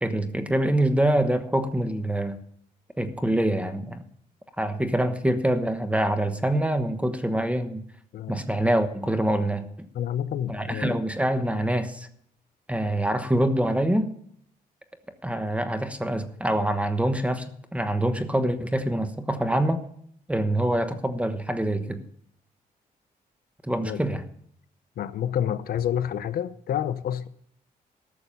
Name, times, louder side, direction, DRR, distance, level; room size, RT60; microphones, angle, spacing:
voice 1, 0.0-2.4 3.0-4.0 4.6-7.8 8.3-9.9 10.5-12.1 12.7-14.2 15.2-17.5 17.7-19.8 20.3-22.0 23.6-24.2, right 1 dB, 10° right, 1.1 m, -25 dB
voice 2, 9.9-11.0 23.8-24.0 25.0-27.3, left 9 dB, 75° left, 0.6 m, -28 dB
13.5 x 6.8 x 6.9 m
cardioid pair, 95°, 15 cm